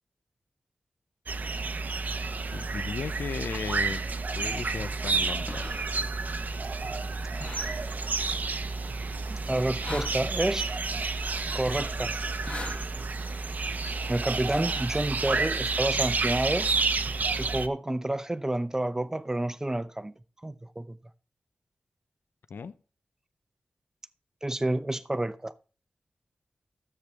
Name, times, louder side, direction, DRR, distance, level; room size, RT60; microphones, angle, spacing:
sound 1, 1.3-17.7, right 4 dB, 55° right, 0.8 m, -30 dB
voice 1, 2.5-4.0 4.3-5.6 22.5-22.7, left 5 dB, 85° left, 0.6 m, -36 dB
sound 2, 4.1-13.1, left 2 dB, 40° left, 1.4 m, -44 dB
voice 2, 9.3-10.7 11.5-12.2 14.1-16.7 17.4-21.0 24.4-25.5, right 1 dB, 15° right, 0.6 m, -29 dB
13.5 x 8.0 x 3.5 m
wide cardioid pair, 100°, 3 cm